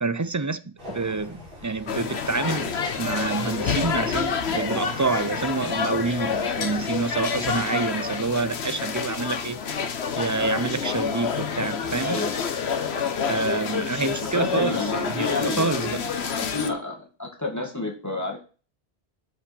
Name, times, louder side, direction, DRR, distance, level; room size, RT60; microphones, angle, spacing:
voice 1, 0.0-2.7 3.0-9.6 10.2-12.2 13.3-16.0, right 4 dB, 30° right, 0.4 m, -27 dB
sound 1, 0.8-7.6, left 1 dB, 55° right, 3.8 m, -43 dB
sound 2, 1.9-16.7, left 6 dB, 75° left, 1.3 m, -28 dB
voice 2, 12.0-12.3 14.3-15.8 16.3-18.4, left 3 dB, 15° left, 2.2 m, -29 dB
7.8 x 5.3 x 6.8 m
omnidirectional pair, 1.1 m